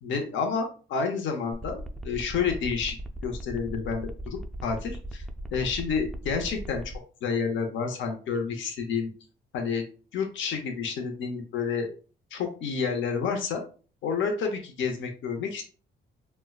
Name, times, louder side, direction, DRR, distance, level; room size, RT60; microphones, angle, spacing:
voice 1, 0.0-3.0 3.2-5.2 5.5-6.8 7.2-9.1 9.5-9.8 10.1-11.9 12.3-13.6 14.0-15.6, left 5 dB, 70° left, 3 dB, 0.8 m, -29 dB
sound 1, 1.5-7.0, right 1 dB, ahead, 0.3 m, -38 dB
4.3 x 2.2 x 2.3 m, 0.38 s
cardioid pair, 90°, 20 cm